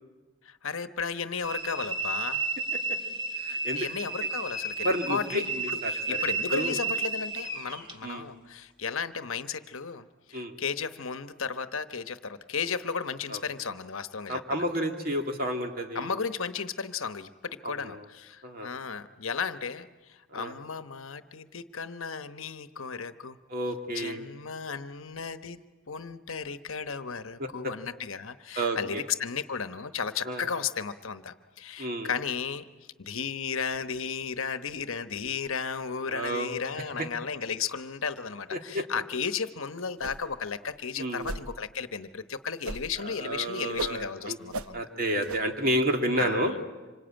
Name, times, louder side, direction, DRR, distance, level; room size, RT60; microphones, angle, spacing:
voice 1, 0.4-2.4 3.7-14.7 15.9-23.4 23.9-25.6 25.9-32.6 33.0-44.8 46.2-46.6, left 6 dB, 70° left, 11 dB, 1.0 m, -34 dB
sound 1, 1.4-7.9, right 3 dB, 25° right, 2.2 m, -32 dB
voice 2, 3.4-3.9 4.8-6.2 6.5-6.8 8.0-8.3 10.3-10.6 13.3-13.4 14.3-16.1 17.6-18.0 18.4-18.7 20.3-20.5 23.5-24.2 27.4-27.7 28.6-29.0 30.3-30.5 31.8-32.1 36.1-36.6 37.0-37.1 38.5-38.8 41.0-41.3 43.0-44.4 44.7-46.5, equal, 45° right, 3 dB, 2.6 m, -30 dB
sound 2, 40.0-40.4 40.7-40.8 41.2-41.5 42.6-43.0 43.3-44.0 44.5-44.7 45.2-45.4, right 3 dB, 85° right, 0.9 m, -37 dB
26.0 x 25.0 x 9.0 m, 1.2 s
head